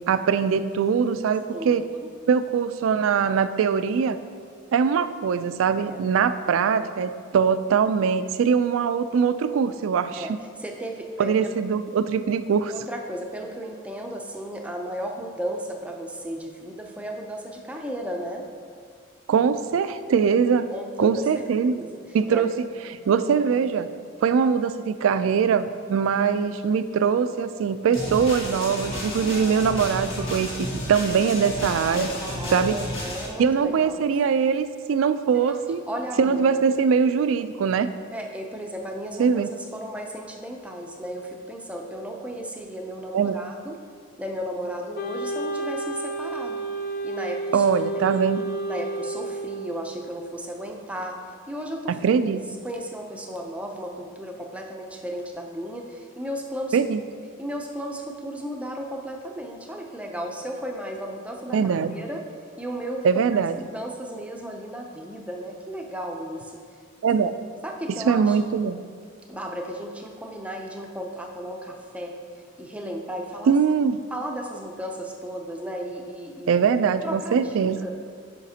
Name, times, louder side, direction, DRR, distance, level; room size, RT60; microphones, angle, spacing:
voice 1, 0.0-1.9 2.3-4.2 4.7-10.4 11.2-12.7 19.3-20.7 21.0-21.8 22.1-22.5 23.1-23.9 24.2-32.1 32.5-32.7 33.4-35.8 36.2-37.9 39.2-39.5 43.1-43.5 47.5-48.5 51.9-52.4 56.7-57.0 61.5-61.9 63.0-63.5 67.0-67.3 68.0-68.9 73.5-74.0 76.5-77.8, right 6 dB, 80° right, 12 dB, 0.3 m, -22 dB
voice 2, 1.5-2.1 5.8-6.0 10.1-10.3 10.6-11.3 12.7-18.5 20.7-21.5 21.7-22.0 22.3-22.5 32.0-34.1 35.3-36.6 38.1-39.4 39.7-43.8 44.2-46.6 47.0-47.6 48.0-48.2 48.7-52.0 52.6-56.8 57.4-62.2 62.6-63.1 63.3-66.6 67.6-68.4 69.3-72.2 72.6-73.5 74.1-76.6 77.0-77.9, equal, 5° right, 1 dB, 0.5 m, -34 dB
sound 1, 27.9-33.3, left 1 dB, 70° left, 1.7 m, -32 dB
Wind instrument woodwind instrument, 44.9-50.1, right 2 dB, 50° left, 0.5 m, -31 dB
9.0 x 5.7 x 2.8 m, 2.1 s
head